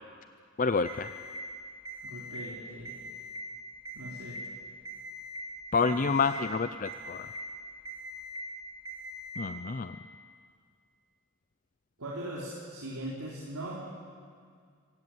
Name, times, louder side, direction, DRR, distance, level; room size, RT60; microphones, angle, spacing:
voice 1, 0.6-1.1 5.7-7.3 9.4-10.0, left 4 dB, 35° left, 10 dB, 0.5 m, -28 dB
Alarm, 0.9-1.4 1.9-2.4 2.8-3.4 3.9-4.4 4.9-5.4 5.9-6.4 6.9-7.4 7.9-8.4 8.9-9.4, left 1 dB, 15° right, 3.8 m, -42 dB
voice 2, 2.0-2.9 3.9-4.4 5.8-6.2 12.0-13.9, right 1 dB, 85° right, -5 dB, 4.0 m, -40 dB
26.0 x 17.5 x 9.3 m, 2.1 s
head